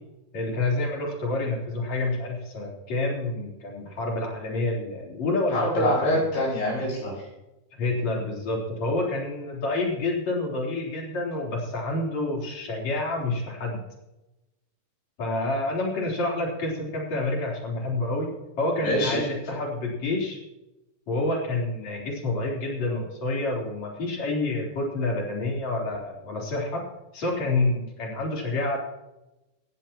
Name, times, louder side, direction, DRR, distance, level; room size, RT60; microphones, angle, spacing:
voice 1, 0.3-6.1 7.7-13.8 15.2-18.3 18.6-20.4 21.1-26.8 27.1-28.8, left 2 dB, 45° left, -3 dB, 4.9 m, -28 dB
voice 2, 5.5-7.2 18.8-19.2, left 1 dB, 65° left, -10 dB, 8.7 m, -24 dB
19.5 x 15.0 x 3.0 m, 0.96 s
omnidirectional pair, 4.4 m